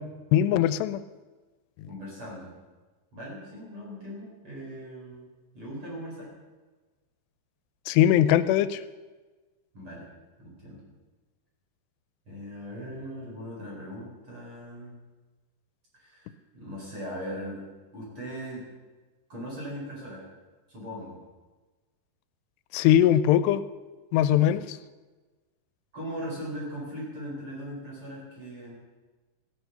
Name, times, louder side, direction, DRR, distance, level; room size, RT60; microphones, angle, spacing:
voice 1, 0.3-1.0 7.9-8.8 22.7-23.6 24.1-24.8, left 11 dB, 85° left, 14 dB, 2.7 m, -21 dB
voice 2, 1.9-2.5 3.1-5.3 5.5-6.3 9.7-10.1 10.4-10.8 12.3-15.0 15.9-17.6 17.9-18.7 19.3-20.3 20.7-21.2 25.9-28.7, equal, 35° right, -4 dB, 4.8 m, -39 dB
15.0 x 11.5 x 6.8 m, 1.3 s
omnidirectional pair, 4.8 m